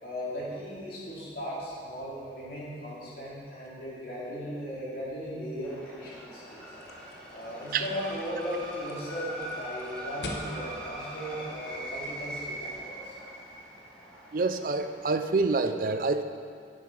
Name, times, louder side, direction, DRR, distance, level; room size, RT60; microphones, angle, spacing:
voice 1, 0.0-6.6 7.3-13.2, equal, 55° left, -7 dB, 2.6 m, -37 dB
sound 1, 5.6-15.6, right 1 dB, 5° left, 1.4 m, -42 dB
sound 2, 6.8-12.1, left 1 dB, 75° left, 1.0 m, -45 dB
voice 2, 14.3-16.2, right 3 dB, 50° right, 8 dB, 0.4 m, -27 dB
10.0 x 7.2 x 4.5 m, 2.2 s
head